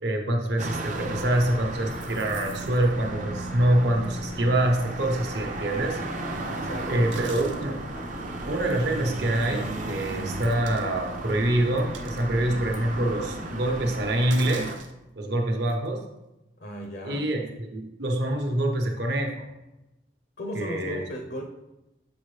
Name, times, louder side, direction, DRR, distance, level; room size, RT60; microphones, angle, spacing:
voice 1, 0.0-6.0 6.9-7.8 8.4-14.7 15.2-16.0 17.0-17.4 17.7-19.4 20.5-21.0, right 1 dB, 65° right, 2 dB, 1.0 m, -25 dB
sound 1, 0.6-14.8, right 2 dB, 40° right, 0.5 m, -35 dB
sound 2, 0.9-14.1, left 1 dB, 25° left, 0.3 m, -40 dB
sound 3, 1.2-3.1 4.0-4.2 4.8-4.9 6.9-7.7 8.7-8.8 9.4-9.5 10.4-10.9 11.3-11.4 11.8-12.3 12.7-12.8 14.3-14.9 15.7-15.9, right 7 dB, 85° right, 0.6 m, -45 dB
voice 2, 6.4-7.2 16.6-17.3 20.4-21.5, left 1 dB, 65° left, 1 dB, 0.7 m, -36 dB
7.2 x 4.5 x 3.3 m, 0.96 s
head